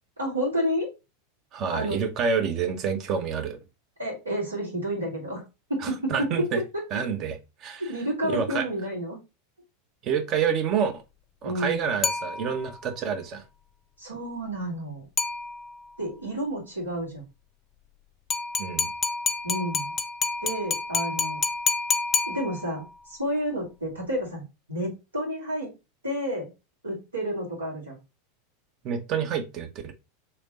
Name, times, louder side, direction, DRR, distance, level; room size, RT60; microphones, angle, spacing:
voice 1, 0.2-0.9 1.7-2.0 4.0-5.4 5.7-6.5 6.7-6.8 7.8-9.2 11.4-11.9 14.0-15.1 16.0-17.2 19.4-19.9 20.4-21.4 22.3-22.8 23.1-24.4 24.7-25.7 26.0-26.5 26.8-28.0, equal, 85° right, 1.8 m, -30 dB
voice 2, 1.5-3.6 5.8-6.6 6.9-7.9 8.2-8.7 10.0-11.0 11.4-13.4 18.6-18.9 28.8-29.9, right 6 dB, 40° right, 0.8 m, -28 dB
sound 1, 12.0-12.9 15.2-15.9 18.3-22.9, left 5 dB, 30° left, 0.5 m, -29 dB
3.4 x 2.9 x 3.8 m
figure-of-eight pair, 85°, 0 cm